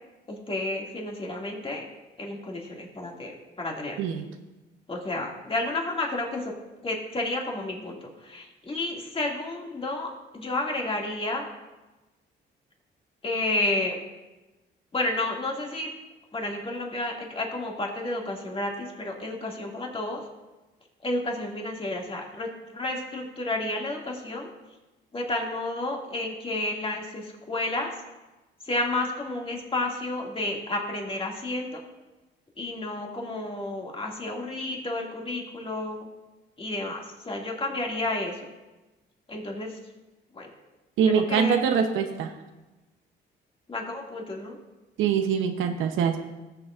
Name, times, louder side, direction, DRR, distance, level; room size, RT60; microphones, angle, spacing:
voice 1, 0.3-1.9 2.2-3.3 3.6-4.0 4.9-6.5 6.8-11.5 13.2-14.0 14.9-15.9 16.3-20.2 21.0-24.5 25.1-27.9 28.7-31.8 32.6-36.1 36.6-38.3 39.3-39.7 40.3-40.5 41.0-41.6 43.7-44.5, left 2 dB, 30° left, -1 dB, 2.3 m, -31 dB
voice 2, 41.0-42.3 45.0-46.2, right 7 dB, 90° right, 5 dB, 0.9 m, -24 dB
18.5 x 6.9 x 2.5 m, 1.1 s
cardioid pair, 90°, 20 cm